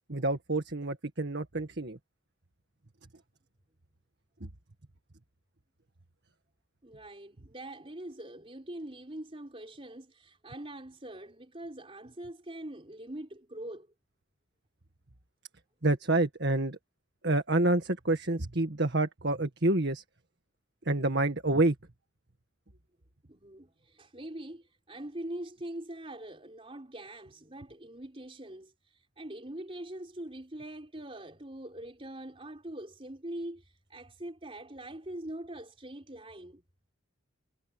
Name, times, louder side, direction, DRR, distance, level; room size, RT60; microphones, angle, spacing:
voice 1, 0.1-2.0 4.4-4.5 15.8-16.8 17.2-20.0 20.9-21.8, right 2 dB, 55° right, 1.8 m, -28 dB
voice 2, 6.8-13.9 23.3-36.6, right 1 dB, 25° right, 4.3 m, -43 dB
head